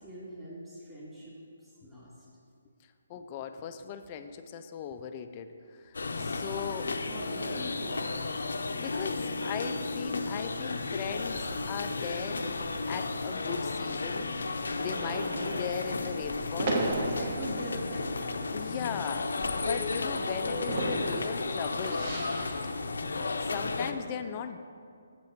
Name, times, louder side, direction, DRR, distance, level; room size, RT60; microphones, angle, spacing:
voice 1, 0.0-2.3 6.8-8.2 9.2-9.8 15.2-15.7 17.1-18.5 20.1-20.2 23.6-23.9, right 1 dB, 10° right, -10 dB, 2.2 m, -43 dB
voice 2, 3.1-6.9 8.8-14.3 14.8-16.8 18.5-22.1 23.1-24.6, left 7 dB, 20° left, 8 dB, 0.4 m, -38 dB
sound 1, 5.9-23.9, left 3 dB, 80° left, 0.6 m, -33 dB
sound 2, 10.5-22.7, right 1 dB, 35° right, 1.1 m, -38 dB
7.7 x 5.6 x 6.6 m, 2.4 s
hypercardioid pair, 170°, 0 cm